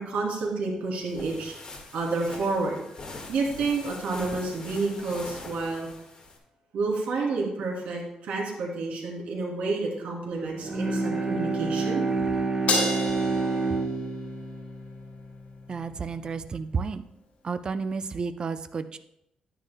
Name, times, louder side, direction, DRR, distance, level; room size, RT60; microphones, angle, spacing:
voice 1, 0.0-1.6 1.9-5.9 6.7-12.0, right 3 dB, 75° right, -3 dB, 2.9 m, -30 dB
sound 1, 1.0-6.4, left 3 dB, 35° left, 1.7 m, -43 dB
Bowed string instrument, 10.5-15.9, right 3 dB, 20° right, 1.2 m, -28 dB
Crash cymbal, 12.7-15.2, left 3 dB, 75° left, 2.9 m, -31 dB
voice 2, 15.7-17.0 17.4-19.0, right 5 dB, 35° right, 11 dB, 0.5 m, -31 dB
10.5 x 9.9 x 2.2 m, 0.79 s
cardioid pair, 115°, 2 cm